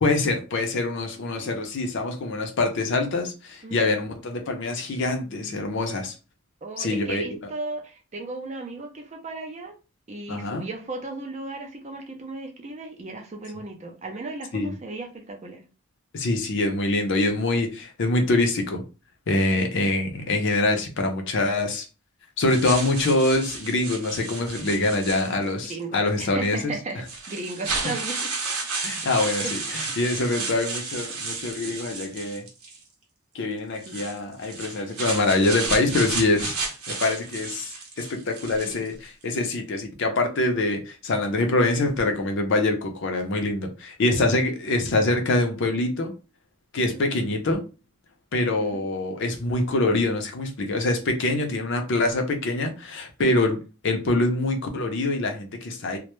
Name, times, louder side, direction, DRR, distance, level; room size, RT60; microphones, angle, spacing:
voice 1, 0.0-6.1 6.8-7.2 10.3-10.6 14.5-14.8 16.1-18.8 19.3-21.9 22.4-26.7 27.8-27.9 28.8-32.4 33.3-36.6 36.9-46.1 46.7-47.6 48.3-53.6 53.8-56.0, left 2 dB, 55° left, 0.5 m, -24 dB
voice 2, 5.2-6.0 6.6-9.7 10.1-15.6 25.6-28.3 29.0-29.5 29.9-30.0 33.8-34.1 38.6-38.9 44.0-44.3 46.8-47.1 48.6-48.8 53.2-53.5, right 2 dB, 30° right, 0.4 m, -36 dB
sound 1, 22.5-25.7 26.5-26.6 27.0-32.8 33.8-38.9, right 4 dB, 85° right, 0.7 m, -32 dB
2.1 x 2.0 x 2.9 m
head